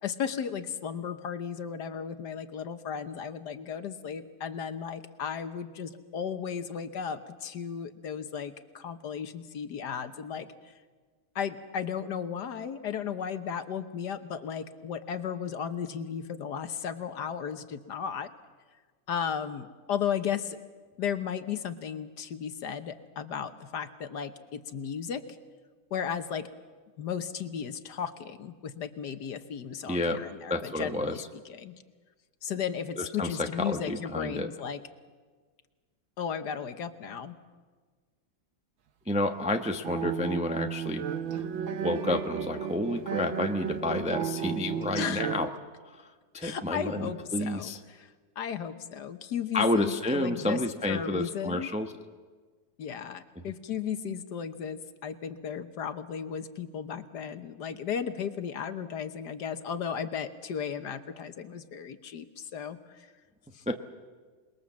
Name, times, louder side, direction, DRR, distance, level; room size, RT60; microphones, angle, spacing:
voice 1, 0.0-10.7 11.3-18.3 19.1-20.6 21.0-25.3 25.9-26.5 27.0-31.2 31.5-31.7 32.4-34.8 36.2-37.4 44.9-45.2 46.4-50.6 50.9-51.7 52.8-63.1 63.5-63.6, left 7 dB, 65° left, 10 dB, 1.6 m, -35 dB
voice 2, 29.9-30.2 30.5-31.3 33.0-34.5 39.1-41.4 41.8-45.5 45.8-47.8 49.5-51.9 63.7-63.8, left 1 dB, 5° right, 5 dB, 0.6 m, -30 dB
sound 1, 39.8-45.5, right 8 dB, 90° right, 1.9 m, -33 dB
27.5 x 21.0 x 7.4 m, 1.5 s
omnidirectional pair, 2.1 m